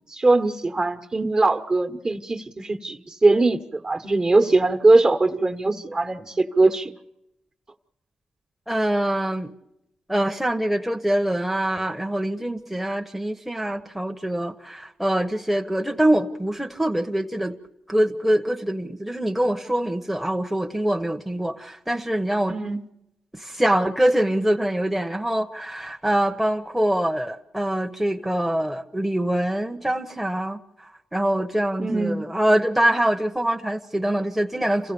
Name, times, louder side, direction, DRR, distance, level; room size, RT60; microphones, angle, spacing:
voice 1, 0.1-6.9 22.5-22.8 31.8-32.3, right 2 dB, 35° right, 1.3 m, -21 dB
voice 2, 8.7-9.5 10.1-17.6 17.9-22.6 23.3-30.6 31.1-34.9, right 1 dB, 5° right, 1.0 m, -24 dB
27.5 x 15.5 x 7.0 m
cardioid pair, 60°, 2 cm